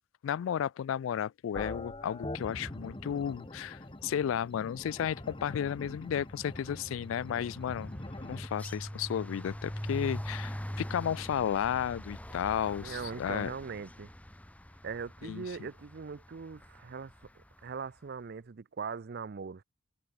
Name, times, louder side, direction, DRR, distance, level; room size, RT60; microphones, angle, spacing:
voice 1, 0.2-7.9 8.2-13.5 15.2-15.4, left 9 dB, 75° left, 0.3 m, -33 dB
sound 1, 1.5-8.5, left 1 dB, 25° left, 1.4 m, -44 dB
sound 2, 3.9-4.3 4.6-17.7, equal, 5° left, 1.8 m, -43 dB
voice 2, 12.8-14.1 14.8-17.1 17.6-19.6, right 5 dB, 55° right, 0.5 m, -40 dB
head